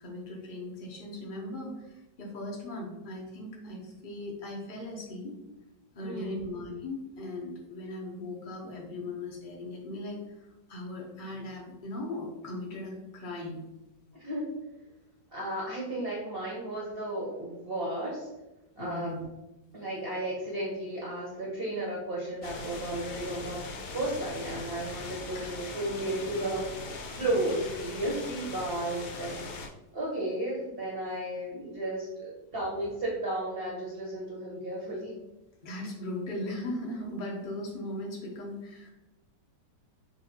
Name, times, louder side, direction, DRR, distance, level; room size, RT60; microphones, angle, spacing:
voice 1, 0.0-5.3 5.9-10.3 10.7-13.6 18.8-19.2 25.3-25.5 27.1-27.3 35.6-38.9, left 1 dB, 35° left, -1 dB, 0.9 m, -38 dB
voice 2, 6.0-6.3 14.2-14.5 15.3-18.3 18.8-19.2 19.7-23.6 23.9-29.4 29.9-35.1, right 1 dB, 40° right, -5 dB, 1.0 m, -33 dB
sound 1, 22.4-29.7, left 3 dB, 75° left, 1.2 m, -40 dB
6.4 x 2.8 x 2.8 m, 0.99 s
omnidirectional pair, 1.9 m